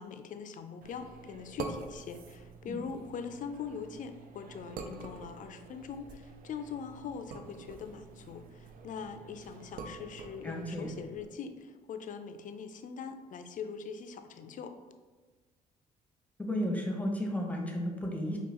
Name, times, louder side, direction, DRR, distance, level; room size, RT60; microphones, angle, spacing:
voice 1, 0.0-14.7, left 6 dB, 55° left, 8 dB, 0.4 m, -42 dB
sound 1, 0.8-11.3, right 4 dB, 65° right, 0.4 m, -47 dB
voice 2, 10.4-10.9 16.4-18.4, equal, 10° left, 1 dB, 0.9 m, -33 dB
5.3 x 2.4 x 2.9 m, 1.3 s
supercardioid pair, 65°, 16 cm